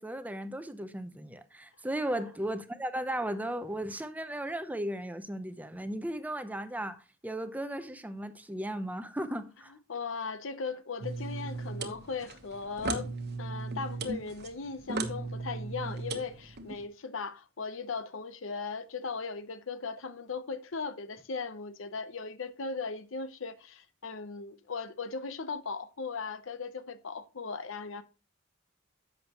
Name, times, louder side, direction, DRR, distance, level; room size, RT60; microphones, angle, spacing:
voice 1, 0.0-9.7, right 1 dB, 10° right, 0.6 m, -36 dB
voice 2, 9.9-28.0, left 4 dB, 70° left, 0.8 m, -38 dB
sound 1, 11.0-16.8, right 3 dB, 55° right, 1.2 m, -37 dB
10.5 x 7.4 x 3.0 m
head